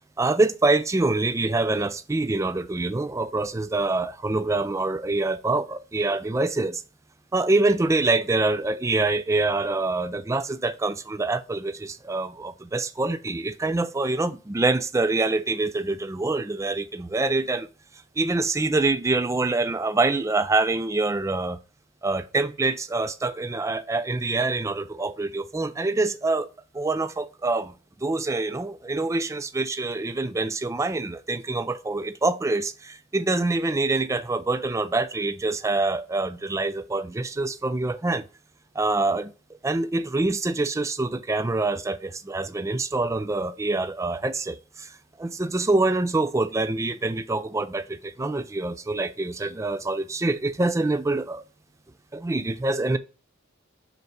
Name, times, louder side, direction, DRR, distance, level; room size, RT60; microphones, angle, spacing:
voice 1, 0.2-6.8 7.3-17.7 18.2-21.6 22.0-26.5 26.7-27.7 28.0-38.2 38.8-51.4 52.1-53.0, right 2 dB, 15° right, 0.3 m, -25 dB
5.4 x 4.5 x 5.4 m
head